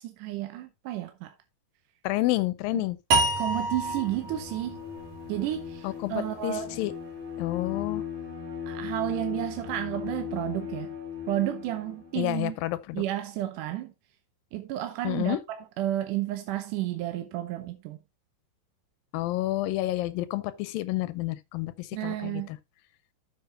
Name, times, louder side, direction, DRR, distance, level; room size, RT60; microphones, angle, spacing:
voice 1, 0.0-1.3 2.7-2.8 3.4-4.8 5.3-6.8 8.7-10.9 11.3-12.6 12.9-13.9 14.5-18.0 21.9-22.5, right 14 dB, 75° right, 2.2 m, -32 dB
voice 2, 2.0-3.0 5.8-6.9 7.4-8.0 12.2-13.0 15.0-15.4 19.1-22.6, left 17 dB, 85° left, 2.4 m, -29 dB
sound 1, 3.1-6.3, right 2 dB, 60° right, 3.6 m, -29 dB
Bowed string instrument, 3.7-12.2, left 8 dB, 5° left, 3.4 m, -38 dB
12.5 x 7.2 x 2.7 m
omnidirectional pair, 4.1 m